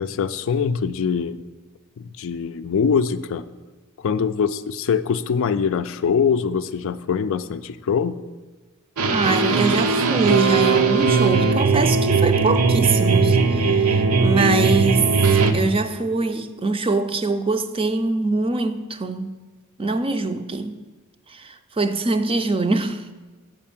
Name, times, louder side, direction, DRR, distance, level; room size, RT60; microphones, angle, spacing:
voice 1, 0.0-1.5 2.0-3.5 4.0-8.2, left 6 dB, 65° left, 0.4 m, -23 dB
sound 1, 9.0-15.5, right 4 dB, 90° right, 0.7 m, -18 dB
voice 2, 9.1-19.4 19.8-20.8 21.3-23.1, right 3 dB, 25° right, 0.5 m, -23 dB
7.6 x 5.1 x 7.1 m
head